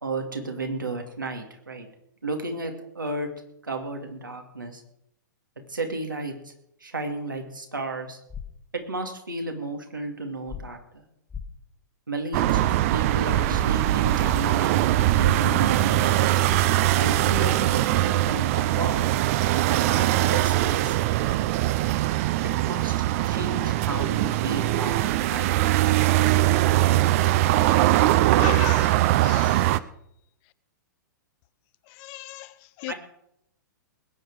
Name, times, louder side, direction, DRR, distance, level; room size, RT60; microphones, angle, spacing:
voice 1, 0.0-1.9 2.2-3.3 3.6-4.8 5.7-6.5 6.8-8.2 8.7-11.0 12.1-14.8 15.2-16.5 17.0-19.0 19.7-21.0 22.6-22.9 23.2-25.6 32.9-33.0, right 2 dB, 85° right, 4 dB, 2.6 m, -33 dB
sound 1, 8.3-8.4 10.5-10.6 11.3-11.4 13.5-13.6 14.3-14.4 16.5-16.6 17.3-17.4, left 7 dB, 10° left, 1.5 m, -35 dB
sound 2, 12.3-29.8, right 15 dB, 45° right, 0.6 m, -22 dB
voice 2, 28.3-29.8 31.9-32.9, left 18 dB, 40° left, 15 dB, 0.5 m, -37 dB
20.5 x 9.2 x 4.9 m, 0.76 s
figure-of-eight pair, 110°, 10 cm